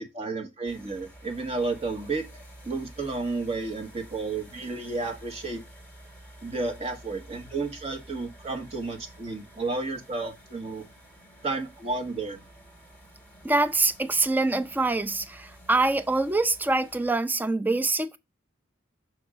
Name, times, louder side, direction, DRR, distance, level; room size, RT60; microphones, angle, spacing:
voice 1, 0.0-5.6 6.4-10.8 11.4-12.4, right 3 dB, 30° right, 1.4 m, -32 dB
sound 1, 0.6-17.1, right 1 dB, 5° left, 2.3 m, -50 dB
voice 2, 13.4-18.2, right 2 dB, 10° right, 0.3 m, -25 dB
6.2 x 3.5 x 4.8 m
head